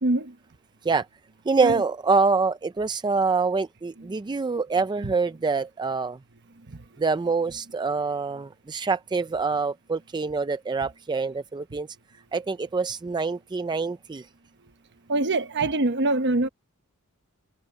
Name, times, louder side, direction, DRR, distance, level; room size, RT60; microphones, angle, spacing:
voice 1, 0.0-0.4 1.6-1.8 5.0-5.1 6.7-6.8 15.1-16.5, right 2 dB, 55° right, 1.2 m, -24 dB
voice 2, 1.5-6.2 7.0-11.9 12.3-14.3, right 4 dB, 20° right, 0.4 m, -25 dB
head